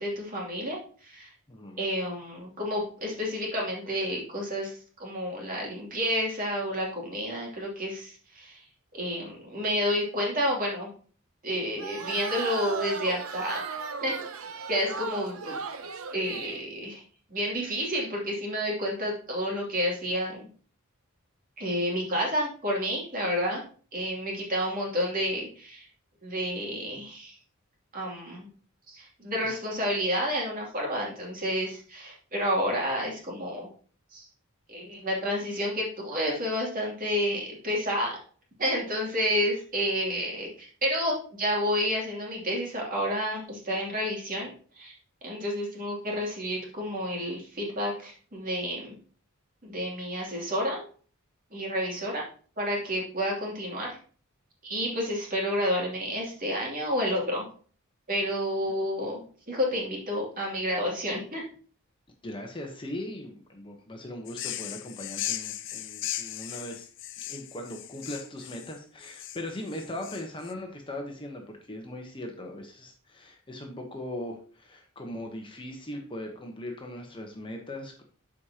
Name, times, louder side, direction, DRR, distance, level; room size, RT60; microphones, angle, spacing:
voice 1, 0.0-1.3 1.8-4.7 5.0-8.6 8.9-10.9 11.4-13.7 14.0-14.2 14.7-15.6 16.1-17.0 17.3-20.5 21.6-23.6 23.9-25.9 26.2-27.3 27.9-28.5 28.9-33.7 34.1-34.3 34.7-38.2 38.6-44.5 44.8-44.9 45.2-48.9 49.6-50.8 51.5-52.2 52.6-53.9 54.6-57.5 58.1-61.4, equal, 40° right, -2 dB, 2.8 m, -30 dB
voice 2, 1.5-1.8 62.2-66.9 67.3-78.0, left 1 dB, 25° left, 2 dB, 1.0 m, -39 dB
sound 1, 11.8-16.7, right 5 dB, 75° right, 0.8 m, -36 dB
sound 2, 64.3-70.5, left 13 dB, 60° left, 0.5 m, -37 dB
12.0 x 5.0 x 2.9 m, 0.41 s
head